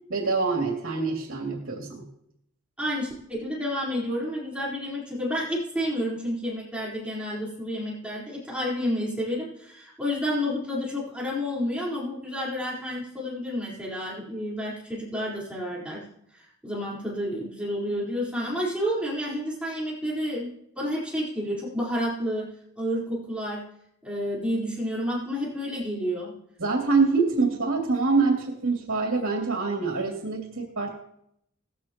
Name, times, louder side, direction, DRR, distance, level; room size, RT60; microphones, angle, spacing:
voice 1, 0.1-2.1 26.6-31.0, right 4 dB, 90° right, -1 dB, 2.7 m, -25 dB
voice 2, 2.8-16.0 16.3-20.5 20.8-22.5 22.8-23.6 24.0-26.3, equal, 5° right, -7 dB, 4.2 m, -30 dB
18.0 x 15.0 x 3.0 m, 0.76 s
head